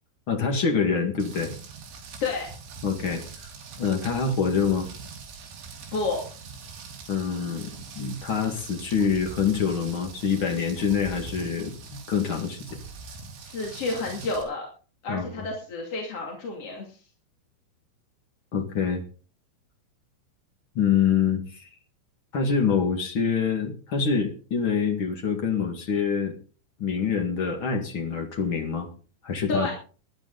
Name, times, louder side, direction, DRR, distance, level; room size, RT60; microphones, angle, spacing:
voice 1, 0.3-1.5 2.8-3.5 3.8-4.9 7.1-7.7 7.9-12.8 15.1-15.4 18.5-19.0 20.7-21.7 22.3-26.3 26.8-28.9 29.2-29.7, left 6 dB, 70° left, 3 dB, 1.2 m, -26 dB
Rain, 1.2-14.4, right 4 dB, 75° right, 6.0 m, -42 dB
voice 2, 5.9-6.2 13.4-14.7 15.0-17.0 29.5-29.7, left 3 dB, 40° left, 0 dB, 2.8 m, -30 dB
19.5 x 11.5 x 4.0 m, 0.39 s
omnidirectional pair, 5.7 m